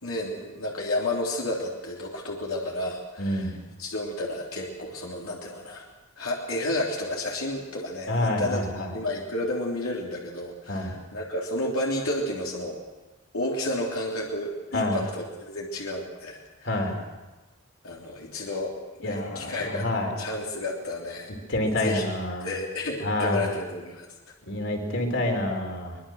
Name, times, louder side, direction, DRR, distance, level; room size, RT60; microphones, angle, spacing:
voice 1, 0.0-3.5 3.8-5.8 6.2-8.6 8.9-12.8 13.3-16.7 17.8-18.7 19.0-19.8 20.2-21.3 21.8-22.1 22.4-24.1, left 1 dB, 85° left, -2 dB, 3.4 m, -31 dB
voice 2, 3.2-3.5 8.1-8.9 10.7-10.9 14.7-15.0 16.6-16.9 19.0-20.1 21.5-22.5 23.0-23.5 24.4-26.0, left 1 dB, 60° left, 2 dB, 4.4 m, -27 dB
23.5 x 22.0 x 6.4 m, 1.2 s
head